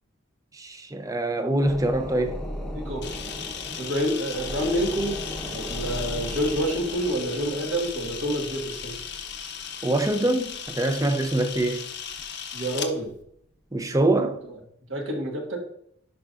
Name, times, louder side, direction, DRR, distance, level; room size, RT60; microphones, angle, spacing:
voice 1, 0.5-2.4 9.8-11.9 13.7-14.4, right 1 dB, 15° right, 0.6 m, -24 dB
sound 1, 1.6-11.6 12.0-12.1, equal, 5° left, 0.9 m, -38 dB
voice 2, 2.7-3.3 3.8-5.2 5.5-9.0 12.5-13.1 14.9-15.6, equal, 70° right, 1.6 m, -28 dB
Camera, 3.0-12.9, left 7 dB, 55° left, 0.8 m, -36 dB
10.5 x 5.5 x 2.5 m
head